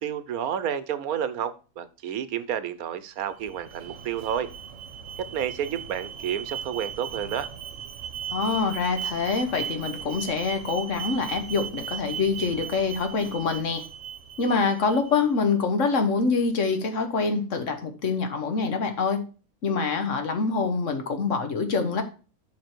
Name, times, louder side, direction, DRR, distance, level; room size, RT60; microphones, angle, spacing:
voice 1, 0.0-4.5 5.2-7.5, right 9 dB, 85° right, 13 dB, 1.2 m, -30 dB
Alarm, 3.2-15.3, right 8 dB, 65° right, 1.2 m, -37 dB
voice 2, 8.3-13.8 14.4-19.2 19.6-22.0, left 4 dB, 60° left, 7 dB, 1.5 m, -25 dB
7.5 x 5.6 x 4.5 m, 0.35 s
omnidirectional pair, 1.5 m